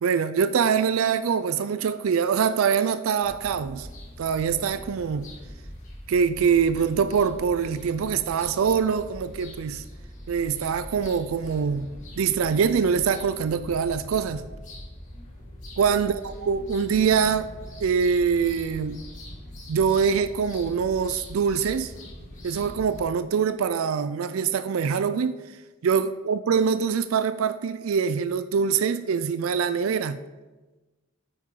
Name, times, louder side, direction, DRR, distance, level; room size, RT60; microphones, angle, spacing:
voice 1, 0.0-3.9 4.2-5.3 6.1-9.8 10.3-11.9 12.2-14.4 15.8-17.5 17.8-19.0 19.7-21.9 22.4-25.4 25.8-30.2, right 6 dB, 80° right, 0.4 m, -24 dB
sound 1, 3.2-23.0, left 1 dB, 35° left, 2.3 m, -42 dB
9.4 x 8.7 x 3.8 m
head